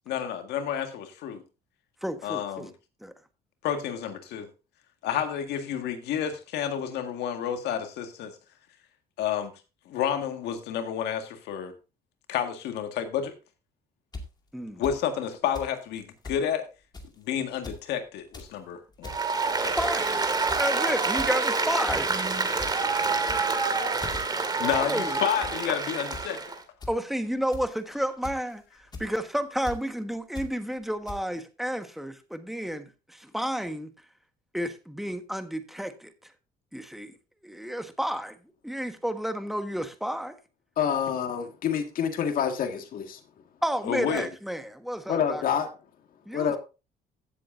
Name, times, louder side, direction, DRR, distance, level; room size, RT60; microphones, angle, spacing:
voice 1, 0.1-1.4 2.2-2.7 3.6-4.5 5.0-8.3 9.2-9.5 9.9-11.7 12.3-13.3 14.8-16.7 17.2-19.2 19.6-19.8 24.6-26.4 43.8-44.3, left 9 dB, 80° left, 1.8 m, -30 dB
voice 2, 2.0-2.7 3.0-3.1 14.5-14.8 19.6-20.2 20.6-22.1 24.8-25.2 26.9-28.6 29.0-33.9 34.5-36.3 36.7-37.1 37.4-38.4 38.6-40.3 43.6-45.4 46.2-46.6, equal, ahead, 1.4 m, -31 dB
sound 1, 14.1-14.2 14.8-14.9 15.5-15.7 16.0-16.1 16.2-16.4 16.9-17.2 17.5-17.8 18.2-18.5 18.9-19.2 19.8-20.1 20.5-20.7 21.2-21.4 21.9-22.0 22.3-22.7 23.2-23.6 24.0-24.2 24.7-24.9 25.2-25.5 26.1-26.3 26.8-26.9 27.5-27.8 28.2-28.5 28.9-29.1 29.6-29.8 30.4-30.5 31.1-31.2, left 2 dB, 25° left, 2.2 m, -39 dB
Applause, 19.0-26.6, right 4 dB, 25° right, 2.1 m, -27 dB
voice 3, 40.8-43.2 45.1-45.7 46.3-46.6, left 8 dB, 55° left, 1.8 m, -27 dB
16.0 x 7.6 x 2.6 m
cardioid pair, 110°, 17 cm